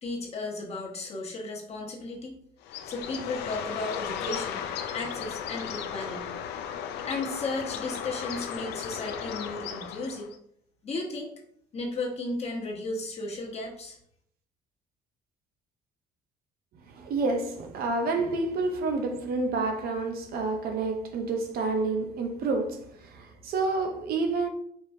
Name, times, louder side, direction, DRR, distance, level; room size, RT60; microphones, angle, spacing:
voice 1, 0.0-2.4 2.8-4.7 4.9-6.4 7.0-10.3 10.8-11.3 11.7-14.0, left 2 dB, 40° left, 1.2 m, -34 dB
Bird, 2.6-10.4, left 8 dB, 75° left, 0.5 m, -35 dB
voice 2, 16.9-24.5, right 3 dB, 65° right, 0.7 m, -29 dB
4.6 x 3.0 x 2.7 m
cardioid pair, 110°, 17 cm